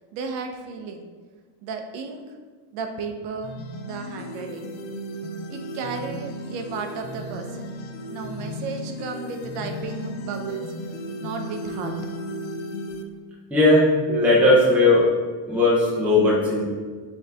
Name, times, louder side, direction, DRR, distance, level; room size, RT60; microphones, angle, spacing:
voice 1, 0.1-1.1 1.6-2.2 2.7-3.6 3.8-4.7 5.5-7.7 8.1-10.6 11.2-11.9, right 5 dB, 60° right, 4 dB, 0.6 m, -33 dB
sound 1, 3.4-13.0, equal, 75° left, 0.6 m, -35 dB
voice 2, 13.5-15.1 15.5-16.6, left 2 dB, 5° right, -6 dB, 0.5 m, -17 dB
5.7 x 2.8 x 3.3 m, 1.5 s
cardioid pair, 170°, 49 cm